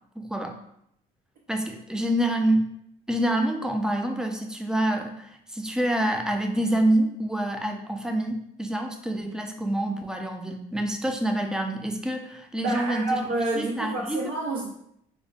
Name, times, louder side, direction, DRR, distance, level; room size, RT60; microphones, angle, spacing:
voice 1, 0.2-0.6 1.5-2.7 3.1-13.2 13.5-14.3, right 1 dB, 5° right, 3 dB, 0.4 m, -27 dB
voice 2, 12.6-14.7, right 2 dB, 80° right, -5 dB, 0.9 m, -28 dB
4.9 x 2.1 x 2.4 m, 0.74 s
cardioid pair, 110°, 17 cm